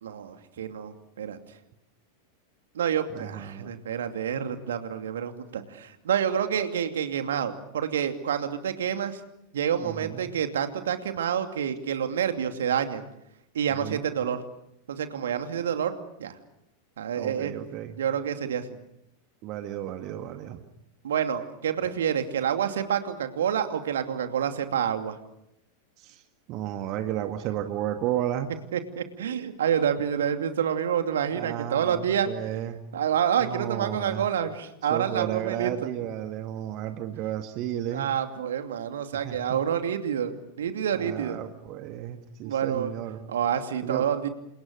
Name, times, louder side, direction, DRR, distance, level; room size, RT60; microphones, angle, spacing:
voice 1, 0.0-1.4 2.7-9.2 9.5-13.0 13.5-14.4 14.9-16.3 17.0-17.5 18.0-18.7 21.0-25.2 28.7-32.3 32.9-35.7 37.9-41.4 42.4-42.9 43.3-44.3, right 8 dB, 60° right, 7 dB, 2.7 m, -28 dB
voice 2, 3.1-3.7 9.8-10.4 13.7-14.0 17.1-18.0 19.4-20.6 26.0-26.2 26.5-28.5 31.3-32.8 33.4-34.3 34.9-38.1 39.2-39.6 40.9-43.2 43.8-44.1, right 12 dB, 40° right, 7 dB, 2.0 m, -33 dB
29.5 x 27.5 x 6.6 m, 0.81 s
figure-of-eight pair, 90°, 0 cm